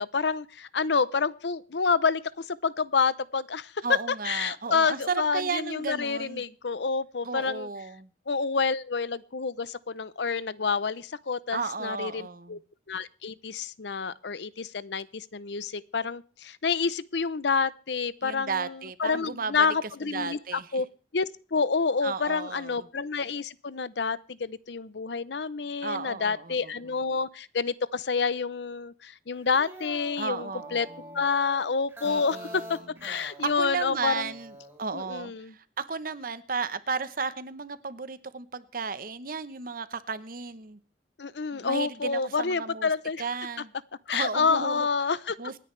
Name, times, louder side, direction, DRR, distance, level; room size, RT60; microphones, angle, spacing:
voice 1, 0.0-3.7 4.2-7.7 8.3-12.6 12.9-20.9 21.1-30.9 31.1-34.3 34.9-35.5 41.2-43.2 44.1-45.4, left 5 dB, 70° left, 0.7 m, -28 dB
voice 2, 3.8-6.4 7.2-8.1 11.5-12.6 18.2-19.7 20.1-20.8 22.0-22.9 25.8-26.7 30.2-31.2 32.0-32.8 33.1-34.5 34.8-40.8 41.5-42.9 43.2-43.7 44.1-44.9 45.4-45.6, right 5 dB, 50° right, 1.0 m, -34 dB
sound 1, 29.3-34.8, equal, 10° right, 4.4 m, -45 dB
27.5 x 9.9 x 3.3 m
head